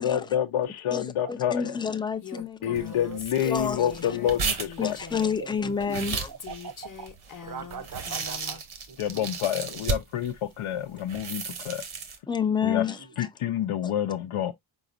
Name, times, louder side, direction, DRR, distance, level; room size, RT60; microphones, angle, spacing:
voice 1, 0.0-1.8 2.6-5.0 9.0-11.8 12.6-12.8 13.2-14.5, left 10 dB, 80° left, 0.6 m, -28 dB
voice 2, 0.9-2.8 3.4-4.2 4.8-6.3 12.3-13.3 13.8-13.9, left 6 dB, 10° left, 0.4 m, -29 dB
Female speech woman speaking, 2.2-5.5 6.4-8.6, left 7 dB, 40° left, 0.8 m, -43 dB
sound 1, 2.7-10.3 11.0-12.2, right 5 dB, 75° right, 1.2 m, -34 dB
voice 3, 5.9-7.1 7.4-8.6 8.9-9.3, right 6 dB, 45° right, 0.7 m, -41 dB
5.0 x 3.9 x 2.5 m
wide cardioid pair, 150°, 49 cm